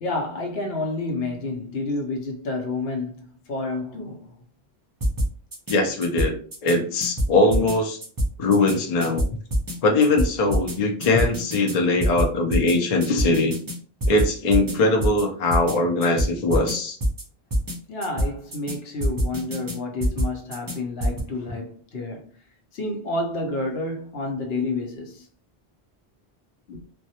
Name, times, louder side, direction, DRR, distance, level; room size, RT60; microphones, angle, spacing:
voice 1, 0.0-4.4 13.1-13.4 17.9-22.3 22.7-25.3 26.7-26.8, left 2 dB, 75° left, 0.8 m, -29 dB
sound 1, 5.0-5.8 6.0-6.8 7.0-7.8 8.0-8.8 9.0-9.8 10.0-10.8 11.0-11.8 12.0-12.8 13.0-13.8 14.0-14.8 15.0-15.2 15.5-16.8 17.0-17.2 17.5-17.8 18.0-18.8 19.0-19.8 20.0-20.8 21.0-21.2, equal, 35° right, 0.3 m, -25 dB
voice 2, 5.7-6.4 6.6-8.0 8.4-9.2 9.8-13.5 14.1-17.0, left 2 dB, 50° left, 0.5 m, -21 dB
2.2 x 2.0 x 2.7 m
omnidirectional pair, 1.1 m